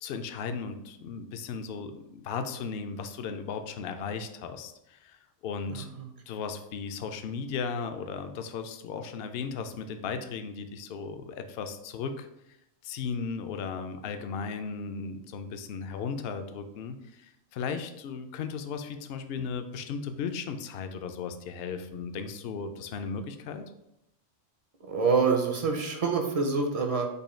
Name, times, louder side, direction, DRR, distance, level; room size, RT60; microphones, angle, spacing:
voice 1, 0.0-5.9 6.3-12.3 12.8-23.6, left 5 dB, 65° left, 8 dB, 0.7 m, -36 dB
voice 2, 5.7-6.1 24.8-27.1, right 4 dB, 40° right, 3 dB, 0.5 m, -26 dB
5.5 x 2.3 x 4.2 m, 0.84 s
omnidirectional pair, 1.3 m